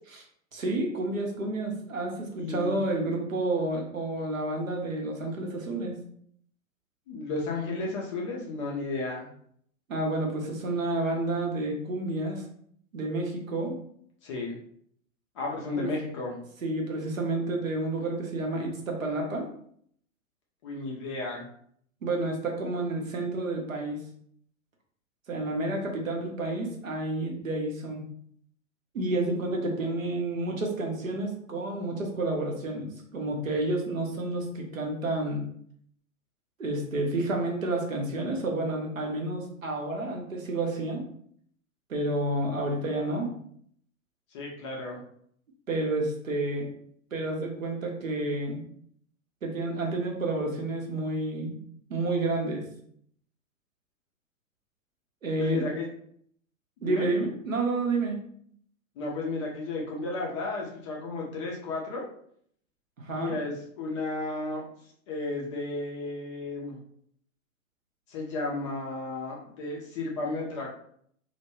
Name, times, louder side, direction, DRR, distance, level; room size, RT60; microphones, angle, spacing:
voice 1, 0.5-6.0 9.9-12.5 12.9-13.7 15.8-15.9 16.6-19.5 22.0-24.0 25.3-28.0 28.9-35.4 36.6-41.0 41.9-43.3 45.7-46.7 47.1-48.6 49.4-51.6 51.9-52.6 55.2-55.7 56.8-58.2 63.0-63.4, right 2 dB, 80° right, 1 dB, 0.8 m, -30 dB
voice 2, 2.4-2.8 7.1-9.3 14.2-14.6 15.3-16.4 20.6-21.5 44.3-45.0 55.4-55.9 56.8-57.1 59.0-62.0 63.1-64.7 65.1-66.8 68.1-70.7, left 3 dB, 25° left, -2 dB, 0.3 m, -33 dB
2.1 x 2.1 x 3.0 m, 0.65 s
figure-of-eight pair, 100°, 40 cm